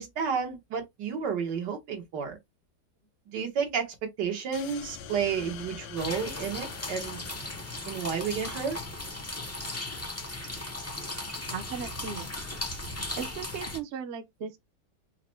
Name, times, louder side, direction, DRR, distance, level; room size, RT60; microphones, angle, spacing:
voice 1, 0.0-2.4 3.3-7.2 7.9-8.8, right 6 dB, 85° right, 1.9 m, -31 dB
sound 1, 4.5-8.9, left 7 dB, 85° left, 1.4 m, -45 dB
sound 2, 6.0-13.8, left 2 dB, 20° left, 0.4 m, -37 dB
voice 2, 11.5-12.3 13.1-14.6, right 7 dB, 55° right, 0.8 m, -37 dB
4.8 x 2.1 x 4.4 m
omnidirectional pair, 1.8 m